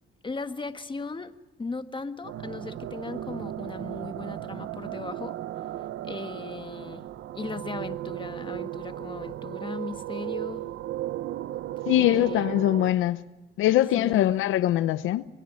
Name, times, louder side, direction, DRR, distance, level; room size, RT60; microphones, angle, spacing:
voice 1, 0.2-1.3 1.6-5.4 6.0-10.7 12.1-12.5 14.0-14.4, left 4 dB, 25° left, 1.5 m, -37 dB
sound 1, 2.2-12.9, right 13 dB, 75° right, 0.8 m, -35 dB
voice 2, 11.9-13.2 13.6-15.3, left 14 dB, 90° left, 0.8 m, -22 dB
28.0 x 22.0 x 6.4 m
cardioid pair, 90°, 20 cm